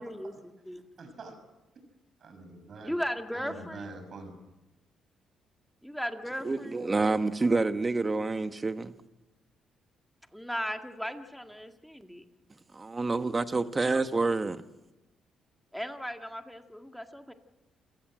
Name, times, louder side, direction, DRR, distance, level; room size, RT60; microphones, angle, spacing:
voice 1, 0.0-0.9 2.8-3.9 5.8-6.8 10.3-12.2 15.7-17.3, equal, ahead, 2.0 m, -37 dB
voice 2, 1.0-1.3 2.2-3.0 3.3-4.4, right 3 dB, 55° right, 6.5 m, -44 dB
voice 3, 6.4-8.9 12.7-14.6, right 3 dB, 25° right, 1.4 m, -28 dB
28.5 x 17.0 x 7.7 m
cardioid pair, 90°, 0 cm